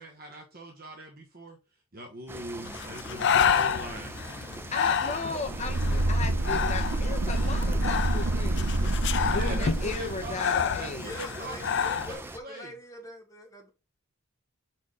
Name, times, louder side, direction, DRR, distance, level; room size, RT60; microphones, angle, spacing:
voice 1, 0.0-1.6 1.9-4.2 9.2-10.4 10.8-12.7, equal, 40° right, 1.1 m, -41 dB
sound 1, 2.3-12.4, right 2 dB, 10° right, 0.5 m, -42 dB
Breathing, 2.7-12.1, left 7 dB, 55° left, 0.4 m, -30 dB
voice 2, 4.7-8.8 9.0-11.1, left 3 dB, 30° left, 1.1 m, -36 dB
sound 2, 5.4-10.3, right 1 dB, 90° right, 0.8 m, -27 dB
voice 3, 10.9-13.7, equal, 15° left, 1.8 m, -44 dB
5.2 x 4.4 x 4.9 m
head